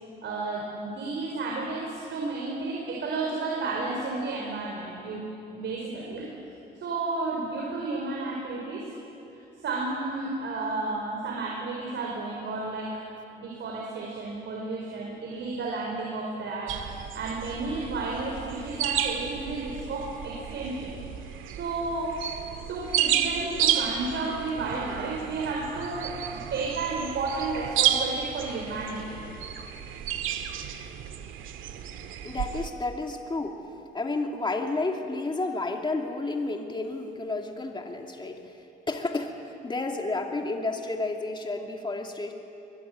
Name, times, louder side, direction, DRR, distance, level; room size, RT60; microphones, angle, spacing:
voice 1, 0.2-6.3 6.8-8.9 9.6-12.9 13.4-20.9 21.6-22.2 22.7-29.4, right 3 dB, 65° right, -2 dB, 5.2 m, -32 dB
sound 1, 16.7-32.7, right 9 dB, 85° right, 1.9 m, -32 dB
voice 2, 32.2-33.6 33.9-42.3, left 2 dB, 25° left, 2 dB, 2.6 m, -31 dB
23.0 x 22.5 x 9.5 m, 2.9 s
cardioid pair, 90°, 20 cm